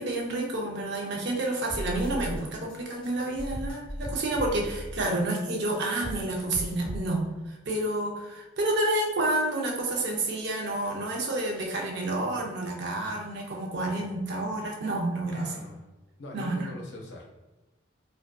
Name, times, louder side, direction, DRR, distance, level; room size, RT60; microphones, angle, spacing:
voice 1, 0.0-15.5 16.3-16.7, right 2 dB, 55° right, 0 dB, 0.5 m, -29 dB
sound 1, 1.7-2.4 2.7-5.1 5.4-7.0, equal, 5° left, 0.6 m, -37 dB
voice 2, 15.3-15.9 16.2-17.5, left 1 dB, 60° left, 0 dB, 0.5 m, -42 dB
2.5 x 2.2 x 2.2 m, 1.1 s
head